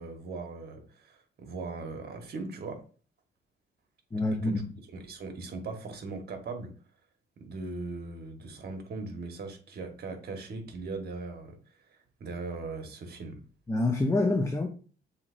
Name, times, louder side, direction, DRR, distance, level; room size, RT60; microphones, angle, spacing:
voice 1, 0.0-2.8 4.3-4.6 4.9-6.7 7.4-11.6 12.2-13.4, right 3 dB, 55° right, 4 dB, 1.2 m, -39 dB
voice 2, 4.1-4.6 13.7-14.7, left 2 dB, 15° left, 4 dB, 0.6 m, -26 dB
7.0 x 2.8 x 2.5 m, 0.39 s
cardioid pair, 90°, 20 cm